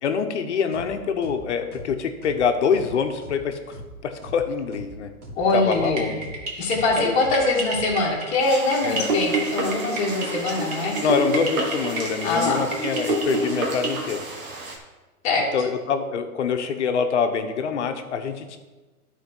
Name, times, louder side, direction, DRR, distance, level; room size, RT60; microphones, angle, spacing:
voice 1, 0.0-3.8 4.0-5.1 5.5-6.2 7.0-7.1 8.8-9.1 11.0-14.3 15.5-18.6, left 6 dB, 50° left, 7 dB, 1.0 m, -25 dB
sound 1, 0.7-0.9 1.2-1.4 1.7-1.9 2.2-2.4 2.7-2.9 3.2-3.4 3.7-3.9 4.2-4.4 4.7-4.9 5.2-5.4 5.7-5.9 6.2-6.4 6.7-6.9 7.2-7.4 7.7-7.9, equal, 85° right, 2.7 m, -40 dB
voice 2, 5.4-6.2 6.6-11.0 12.2-12.6 15.2-15.5, left 3 dB, 15° left, -3 dB, 1.3 m, -23 dB
sound 2, 5.7-14.1, right 2 dB, 25° right, 1.2 m, -29 dB
sound 3, 8.4-14.8, right 2 dB, 65° right, 2.0 m, -34 dB
12.5 x 4.5 x 4.5 m, 1.2 s
hypercardioid pair, 160°, 44 cm